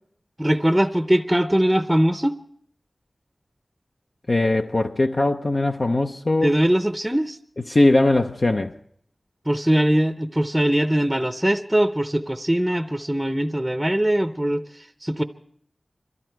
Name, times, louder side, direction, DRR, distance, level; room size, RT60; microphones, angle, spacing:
voice 1, 0.4-2.4 6.4-7.4 9.5-15.2, right 1 dB, 10° right, 0.6 m, -21 dB
voice 2, 4.3-6.5 7.7-8.7, left 2 dB, 55° left, 0.6 m, -20 dB
22.5 x 14.0 x 4.6 m
wide cardioid pair, 45°, 0 cm